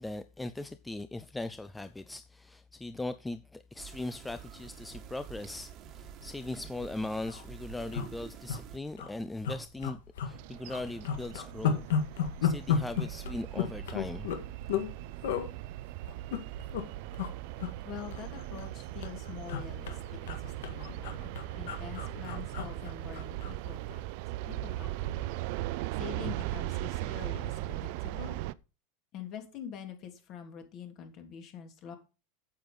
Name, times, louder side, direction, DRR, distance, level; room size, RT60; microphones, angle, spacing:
voice 1, 0.0-11.8 12.4-14.3, left 2 dB, 10° left, 0.5 m, -39 dB
sound 1, 3.8-8.8, right 8 dB, 40° right, 1.5 m, -48 dB
sound 2, 6.5-6.6 6.9-7.0 7.2-7.4 7.9-8.6 8.9-9.1 9.4-10.4 10.7-14.9 15.2-15.5 16.1-16.8 17.1-17.3 17.6-18.7 19.0-23.6 23.9-24.1, left 7 dB, 90° left, 1.8 m, -33 dB
sound 3, 10.3-28.5, right 16 dB, 65° right, 0.5 m, -38 dB
voice 2, 17.8-24.0 24.5-25.4 26.0-28.4 29.1-32.0, left 8 dB, 45° left, 3.0 m, -45 dB
8.8 x 8.1 x 5.4 m
supercardioid pair, 135°, 0 cm